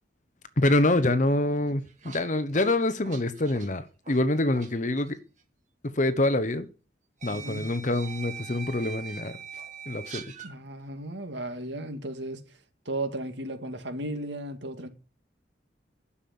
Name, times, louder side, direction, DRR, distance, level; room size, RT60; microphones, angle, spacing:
voice 1, 0.6-5.2 5.9-6.7 7.2-9.4 9.9-10.2, left 1 dB, 40° left, 1.0 m, -25 dB
sound 1, 1.7-4.7 5.0-5.2 6.3-6.4 7.2-10.5, right 6 dB, 40° right, 2.4 m, -42 dB
voice 2, 7.3-7.7 10.4-12.4 12.9-14.9, right 1 dB, 75° right, 2.3 m, -35 dB
11.5 x 7.1 x 8.6 m
head